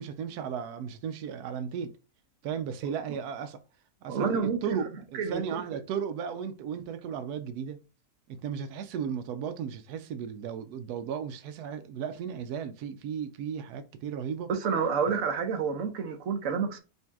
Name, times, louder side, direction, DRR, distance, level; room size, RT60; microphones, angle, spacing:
voice 1, 0.0-1.9 2.4-3.6 4.0-7.8 8.3-14.5, right 7 dB, 85° right, 1.1 m, -35 dB
voice 2, 4.1-4.8 5.1-5.4 14.5-16.8, right 6 dB, 60° right, 1.1 m, -29 dB
5.3 x 2.7 x 3.5 m
omnidirectional pair, 1.6 m